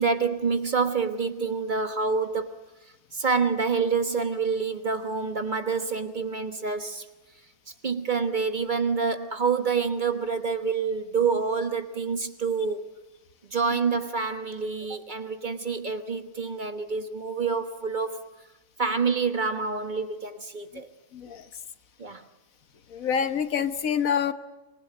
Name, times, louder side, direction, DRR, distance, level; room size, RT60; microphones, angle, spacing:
voice 1, 0.0-2.6 3.1-7.1 7.8-12.9 13.5-18.3 18.8-20.9 22.0-22.3, right 5 dB, 35° right, 1.3 m, -27 dB
voice 2, 22.9-24.3, left 7 dB, 75° left, 1.5 m, -26 dB
26.0 x 20.0 x 9.1 m
omnidirectional pair, 1.5 m